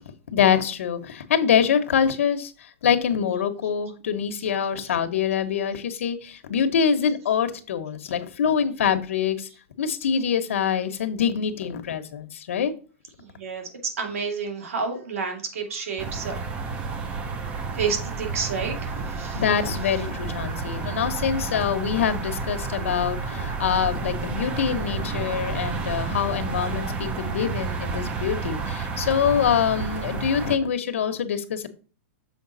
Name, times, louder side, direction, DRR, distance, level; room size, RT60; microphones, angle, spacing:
voice 1, 0.3-9.5 9.8-12.7 19.3-31.7, left 8 dB, 70° left, 1.1 m, -25 dB
voice 2, 13.2-16.4 16.7-16.9 17.7-19.4 21.4-21.5, right 5 dB, 85° right, 2.3 m, -30 dB
sound 1, 16.0-30.6, right 5 dB, 15° right, 0.5 m, -30 dB
7.1 x 4.9 x 4.0 m
supercardioid pair, 175°, 7 cm